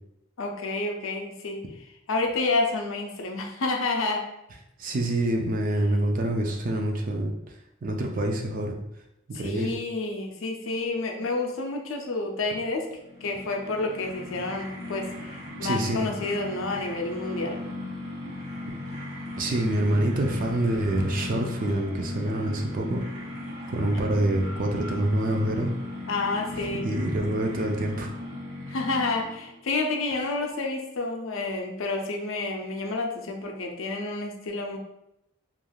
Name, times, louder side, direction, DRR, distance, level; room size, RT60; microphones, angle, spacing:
voice 1, 0.4-1.6 2.1-4.3 9.3-12.9 13.2-17.6 26.1-26.9 28.7-34.8, left 3 dB, 75° left, 2 dB, 0.5 m, -29 dB
voice 2, 4.8-7.3 7.8-8.8 9.3-9.7 15.6-16.0 19.4-23.0 23.7-25.7 26.6-28.1, right 1 dB, 40° right, 2 dB, 0.4 m, -26 dB
sound 1, 12.9-29.6, left 2 dB, 75° right, 1.1 m, -37 dB
3.3 x 2.4 x 2.3 m, 0.85 s
head